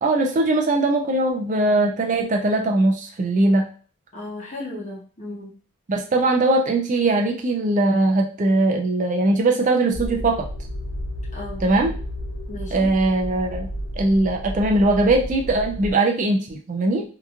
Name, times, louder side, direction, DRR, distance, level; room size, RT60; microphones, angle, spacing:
voice 1, 0.0-3.6 5.9-10.5 11.6-11.9 12.7-13.7 14.0-17.0, right 2 dB, 35° right, 2 dB, 0.4 m, -20 dB
voice 2, 4.1-5.5 11.3-11.6 12.5-12.9, left 2 dB, 35° left, -4 dB, 0.8 m, -35 dB
sound 1, 9.9-15.9, equal, 85° left, 0.7 m, -32 dB
2.8 x 2.4 x 2.4 m, 0.41 s
head